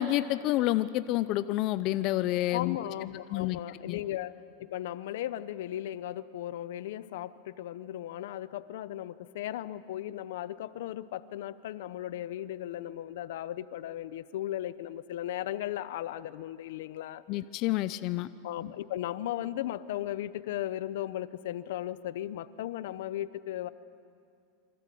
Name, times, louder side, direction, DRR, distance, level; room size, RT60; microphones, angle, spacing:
voice 1, 0.0-2.8 3.3-3.6 3.9-4.0 17.3-18.3, left 15 dB, 45° left, 14 dB, 0.6 m, -28 dB
voice 2, 2.5-17.2 18.4-23.7, left 13 dB, 75° left, 15 dB, 0.8 m, -36 dB
27.0 x 24.0 x 8.6 m, 2.5 s
supercardioid pair, 145°, 0 cm